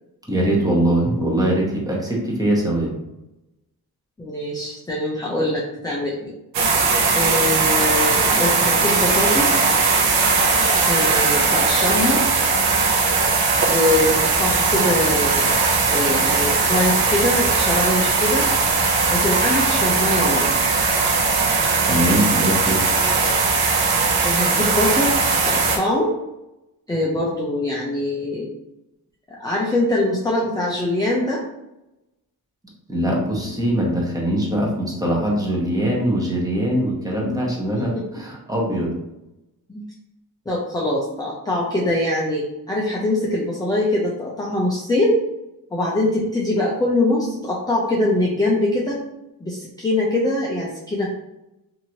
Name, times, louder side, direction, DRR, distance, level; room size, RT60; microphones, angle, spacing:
voice 1, 0.3-2.9 21.8-22.8 32.9-39.0, right 1 dB, 10° right, -3 dB, 0.8 m, -22 dB
voice 2, 4.2-6.3 7.1-9.7 10.9-12.2 13.7-18.5 19.1-20.7 24.2-25.2 25.4-26.1 26.9-28.5 29.4-31.4 37.8-38.0 39.7-39.9 40.5-45.2 45.7-49.0 49.4-51.1, left 1 dB, 10° left, -3 dB, 0.4 m, -23 dB
sound 1, 6.5-25.8, right 4 dB, 75° right, 0.7 m, -19 dB
2.9 x 2.7 x 2.7 m, 0.92 s
cardioid pair, 115°, 37 cm